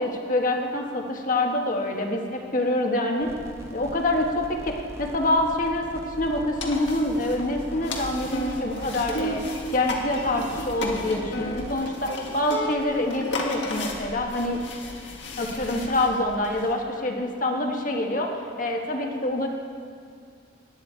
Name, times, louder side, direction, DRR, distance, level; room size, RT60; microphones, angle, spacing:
voice 1, 0.0-3.3 3.7-9.4 9.7-14.6 15.4-19.5, left 1 dB, 40° left, 2 dB, 1.4 m, -26 dB
sound 1, 3.2-11.7, equal, 15° right, 0.9 m, -42 dB
sound 2, 6.6-16.7, left 1 dB, 70° left, 1.7 m, -33 dB
18.5 x 10.5 x 4.5 m, 2.2 s
head